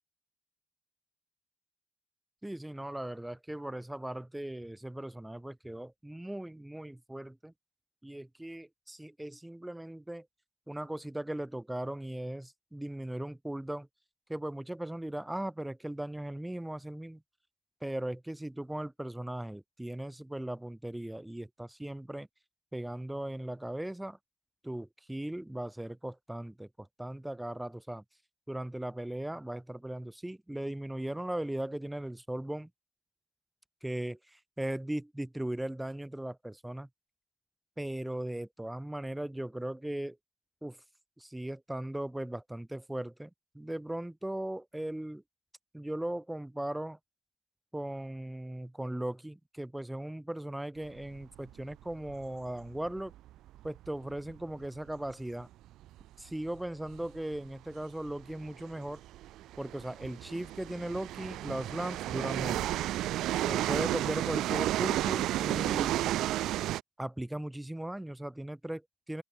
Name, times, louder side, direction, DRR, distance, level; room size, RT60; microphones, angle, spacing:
voice 1, 2.4-7.5 8.0-10.3 10.7-13.9 14.3-17.2 17.8-22.3 22.7-24.2 24.6-28.0 28.5-32.7 33.8-36.9 37.8-40.2 40.6-40.8 41.2-45.2 45.7-47.0 47.7-53.1 53.6-55.5 56.2-59.0 59.6-62.7 63.4-66.0 67.0-69.2, right 1 dB, 5° right, 3.8 m, -38 dB
sound 1, 51.2-55.1 55.4-55.5 55.8-56.0 56.9-57.1 57.3-57.4 58.1-66.8, right 14 dB, 85° right, 1.6 m, -32 dB
open air
cardioid pair, 90°, 0 cm